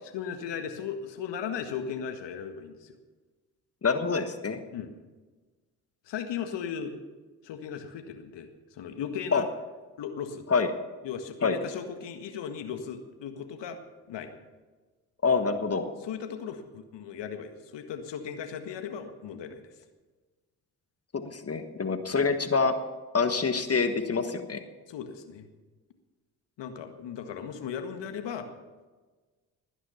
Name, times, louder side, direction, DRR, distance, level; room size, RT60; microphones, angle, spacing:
voice 1, 0.1-3.0 4.7-4.9 6.0-6.9 7.4-9.5 10.0-10.5 11.0-13.8 14.1-14.3 15.8-19.8 22.0-22.3 24.9-25.5 26.6-28.5, left 7 dB, 60° left, 7 dB, 1.8 m, -37 dB
voice 2, 3.8-4.6 9.3-9.4 10.5-10.7 11.4-11.5 15.2-15.8 21.1-22.7 23.1-24.6, left 4 dB, 30° left, 8 dB, 1.6 m, -26 dB
19.0 x 9.9 x 5.8 m, 1.3 s
hypercardioid pair, 55°, 48 cm